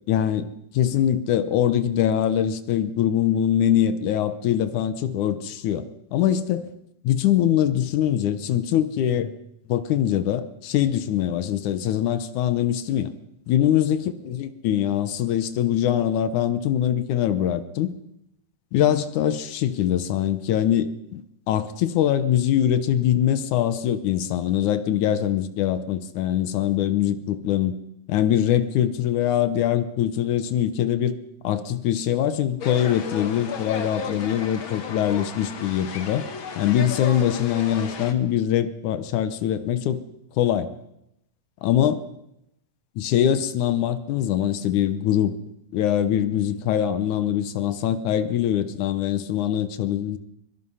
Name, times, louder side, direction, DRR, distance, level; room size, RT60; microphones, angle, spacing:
voice 1, 0.1-0.5 0.7-6.7 7.0-9.3 9.7-13.1 13.5-14.0 14.3-17.9 18.7-27.8 28.1-31.2 31.4-36.3 36.6-40.0 40.4-40.7 41.6-42.0 43.0-45.4 45.7-50.2, left 10 dB, 70° left, 13 dB, 2.1 m, -23 dB
sound 1, 32.6-38.1, left 6 dB, 50° left, 1.6 m, -34 dB
23.0 x 22.0 x 5.6 m, 0.81 s
omnidirectional pair, 4.2 m